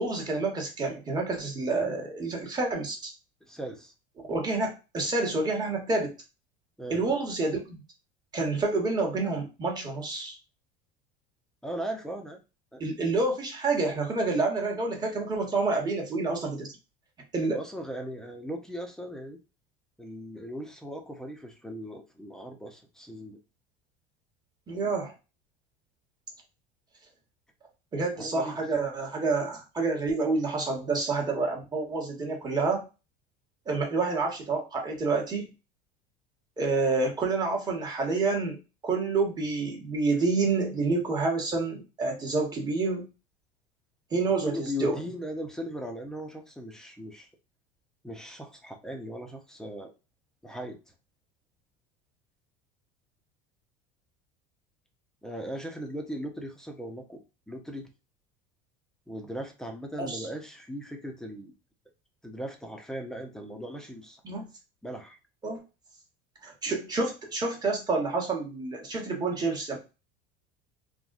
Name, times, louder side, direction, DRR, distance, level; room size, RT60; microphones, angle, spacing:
voice 1, 0.0-3.1 4.3-6.1 6.9-7.8 8.3-10.4 12.8-16.7 17.3-17.6 24.7-25.1 27.9-32.8 33.7-35.5 36.6-38.6 38.8-43.0 44.1-45.0 60.0-60.3 64.2-64.5 65.4-65.6 66.4-69.8, right 3 dB, 20° right, 1 dB, 1.0 m, -28 dB
voice 2, 3.5-3.9 6.8-7.0 11.6-12.4 12.7-12.8 17.5-19.4 20.0-23.4 28.2-28.6 44.3-47.3 48.0-49.9 50.4-50.8 55.2-57.2 57.5-57.9 59.1-61.5 62.2-64.2 64.8-65.2, equal, 5° left, 3 dB, 0.5 m, -38 dB
3.5 x 2.1 x 2.5 m, 0.30 s
supercardioid pair, 125°, 18 cm